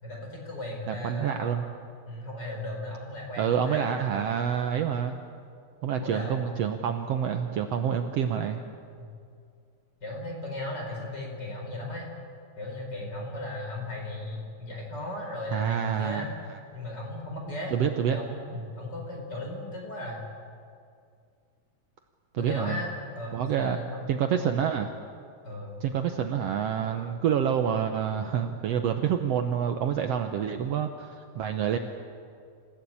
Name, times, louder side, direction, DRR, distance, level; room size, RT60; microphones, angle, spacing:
voice 1, 0.0-1.5 2.1-3.9 6.0-6.4 9.0-9.1 10.0-12.1 12.6-16.3 16.7-17.7 18.1-20.3 22.4-22.9 23.2-24.5 25.4-25.8, left 1 dB, 35° left, 0 dB, 4.9 m, -36 dB
voice 2, 0.9-1.6 3.4-5.2 5.8-8.6 15.5-16.3 17.7-18.2 22.3-22.8 23.3-23.8 24.1-24.9 25.8-31.8, right 8 dB, 65° right, 6 dB, 1.8 m, -27 dB
26.5 x 16.0 x 8.7 m, 2.3 s
omnidirectional pair, 3.5 m